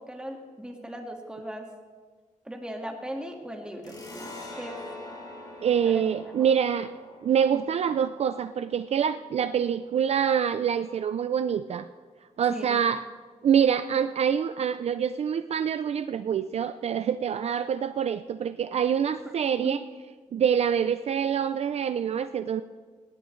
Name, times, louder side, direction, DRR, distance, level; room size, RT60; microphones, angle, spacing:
voice 1, 0.1-1.7 2.5-4.8 5.8-6.0 12.5-12.8 19.5-19.8, right 1 dB, 5° right, 2 dB, 1.8 m, -38 dB
sound 1, 3.8-11.0, left 2 dB, 30° left, 3.8 m, -45 dB
voice 2, 5.6-6.9 7.2-11.9 12.4-13.0 13.4-19.8 20.3-22.6, right 8 dB, 50° right, 11 dB, 0.4 m, -25 dB
19.0 x 18.0 x 3.2 m, 1.5 s
wide cardioid pair, 155°, 13 cm